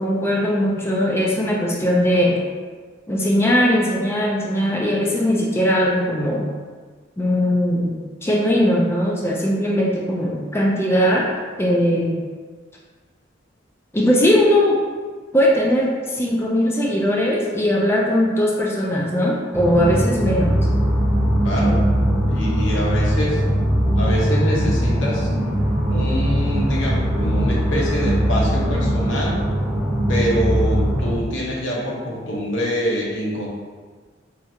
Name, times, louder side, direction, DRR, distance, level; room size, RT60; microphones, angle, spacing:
voice 1, 0.0-2.4 3.1-6.5 7.2-8.0 8.2-11.3 11.6-12.2 13.9-14.8 15.3-20.7, equal, 15° left, -3 dB, 0.4 m, -19 dB
sound 1, 19.5-31.2, equal, 15° right, 0.8 m, -20 dB
voice 2, 21.4-21.8 22.3-23.4 24.0-25.3 25.9-29.4 30.1-33.5, equal, 85° left, -4 dB, 0.9 m, -25 dB
4.3 x 2.4 x 2.7 m, 1.5 s
head